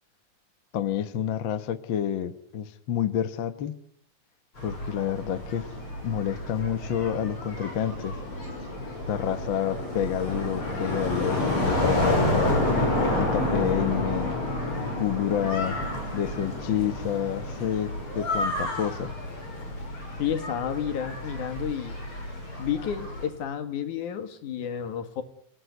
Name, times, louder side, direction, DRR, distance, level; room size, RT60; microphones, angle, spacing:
voice 1, 0.7-3.7 4.6-5.7 6.0-8.2 9.1-12.6 13.1-14.3 14.9-15.8 16.1-19.1, left 9 dB, 55° left, 12 dB, 1.4 m, -29 dB
sound 1, 4.6-23.3, left 1 dB, 40° left, 7.4 m, -29 dB
voice 2, 20.2-22.0 22.6-25.2, left 8 dB, 70° left, 10 dB, 3.3 m, -31 dB
29.0 x 18.0 x 9.4 m, 0.69 s
omnidirectional pair, 3.7 m